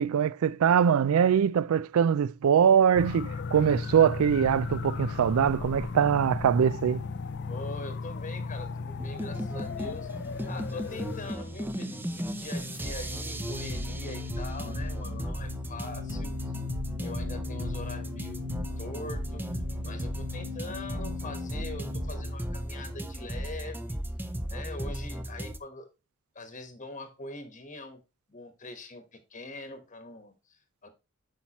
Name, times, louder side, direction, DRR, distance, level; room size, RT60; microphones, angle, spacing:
voice 1, 0.0-7.0, right 8 dB, 65° right, 0.3 m, -23 dB
sound 1, 2.9-11.3, left 4 dB, 50° left, 0.4 m, -36 dB
voice 2, 7.5-10.1 10.5-16.5 17.0-18.5 18.8-24.0 24.5-25.9 26.3-28.0 28.3-30.9, left 2 dB, 35° left, 1.2 m, -43 dB
sound 2, 9.0-25.6, equal, 10° right, 0.6 m, -35 dB
sound 3, 11.3-23.5, left 5 dB, 85° right, 3.1 m, -41 dB
8.5 x 5.7 x 2.9 m
head